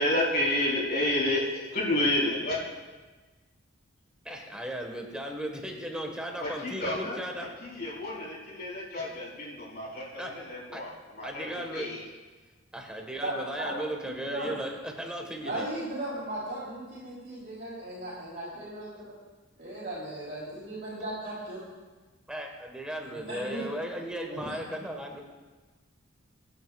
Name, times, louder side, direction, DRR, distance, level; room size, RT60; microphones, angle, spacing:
voice 1, 0.0-2.6 6.4-7.2 7.6-12.0, left 1 dB, 50° left, -6 dB, 4.4 m, -30 dB
voice 2, 4.2-7.5 10.2-10.3 10.7-10.8 11.2-11.9 12.7-15.7 22.3-25.2, equal, 5° right, 1 dB, 1.5 m, -36 dB
voice 3, 13.2-13.8 14.3-14.6 15.4-19.1 19.6-21.6 23.0-23.6 24.3-24.5, right 1 dB, 50° right, -10 dB, 3.6 m, -36 dB
24.5 x 9.5 x 2.4 m, 1.3 s
head